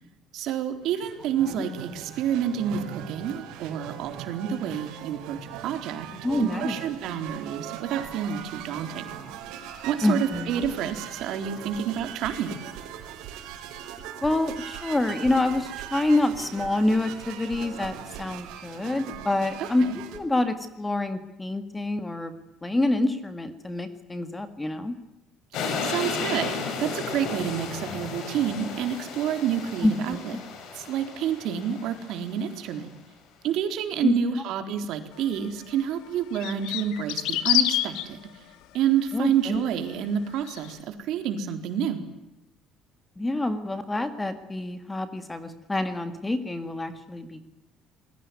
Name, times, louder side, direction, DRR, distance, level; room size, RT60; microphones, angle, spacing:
voice 1, 0.3-6.1 6.4-9.1 9.8-12.6 19.6-20.0 25.8-30.4 30.7-32.9 33.4-38.4 38.7-42.0, right 9 dB, 60° right, 8 dB, 4.0 m, -29 dB
sound 1, 0.8-20.2, right 9 dB, 90° right, 5.1 m, -40 dB
voice 2, 6.2-6.7 10.0-10.6 14.2-22.3 22.6-25.0 29.8-30.2 34.0-34.4 39.1-39.6 43.2-47.4, left 2 dB, 10° left, 10 dB, 1.9 m, -27 dB
sound 2, 25.5-32.6, left 5 dB, 55° left, 6.6 m, -34 dB
sound 3, 35.4-35.5 36.3-38.1 40.4-40.7, left 13 dB, 90° left, 2.0 m, -26 dB
27.5 x 21.5 x 9.6 m, 0.93 s
cardioid pair, 170°, 0 cm